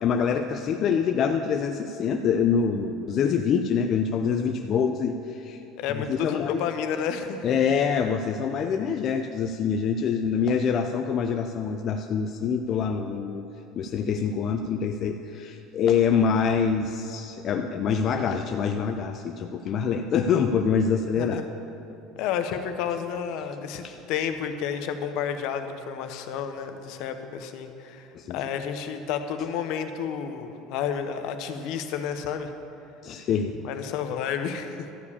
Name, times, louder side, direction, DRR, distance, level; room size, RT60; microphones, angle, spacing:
voice 1, 0.0-5.6 5.9-6.6 7.4-13.4 13.8-21.4 23.8-24.0 28.1-28.4 33.0-33.6, left 6 dB, 40° left, 5 dB, 0.4 m, -25 dB
voice 2, 5.8-7.5 21.1-21.4 22.2-28.1 28.3-32.5 33.6-34.9, left 7 dB, 60° left, 8 dB, 0.8 m, -31 dB
13.0 x 4.8 x 8.5 m, 2.9 s
cardioid pair, 150°, 0 cm